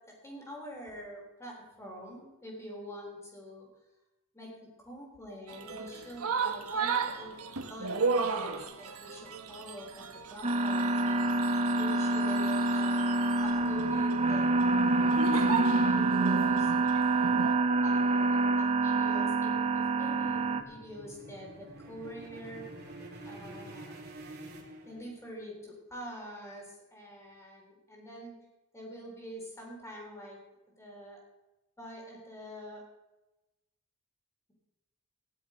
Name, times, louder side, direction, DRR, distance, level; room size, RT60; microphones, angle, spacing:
voice 1, 0.1-3.7 4.3-4.5 4.9-11.5 11.8-17.3 17.8-22.6 23.2-24.0 24.9-28.3 28.7-30.4 30.8-31.2 31.8-32.8, equal, 15° left, -1 dB, 3.9 m, -45 dB
sound 1, 5.5-17.5, right 4 dB, 85° right, 1.3 m, -34 dB
sound 2, 10.4-20.6, right 2 dB, 30° right, 0.8 m, -27 dB
sound 3, 18.5-25.4, right 1 dB, 45° right, 2.8 m, -48 dB
16.0 x 11.0 x 5.1 m, 1.0 s
head